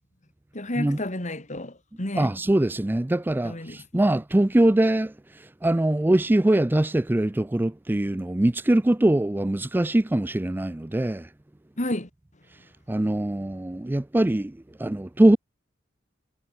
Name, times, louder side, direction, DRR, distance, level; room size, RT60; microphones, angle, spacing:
voice 1, 0.5-2.3 3.4-4.0 11.8-12.1, left 1 dB, 40° left, 3.7 m, -31 dB
voice 2, 2.2-5.1 5.6-11.3 12.9-14.5 14.8-15.4, right 1 dB, 10° right, 0.4 m, -22 dB
head